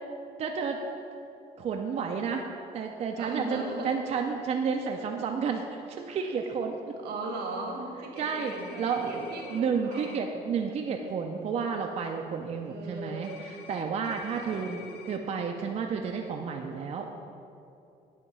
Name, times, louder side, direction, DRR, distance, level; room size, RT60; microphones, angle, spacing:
voice 1, 0.4-0.8 1.6-2.4 2.7-5.7 6.0-6.8 8.2-8.5 8.8-14.7 15.1-17.1, right 6 dB, 40° right, 3 dB, 0.4 m, -31 dB
voice 2, 3.2-4.0 7.0-10.1 12.6-13.5 14.4-14.9, right 2 dB, 75° right, 1 dB, 1.1 m, -38 dB
sound 1, 8.2-9.6 9.9-10.2 13.2-15.2, left 7 dB, 80° left, 0.5 m, -48 dB
8.5 x 2.9 x 5.4 m, 2.7 s
cardioid pair, 110°, 17 cm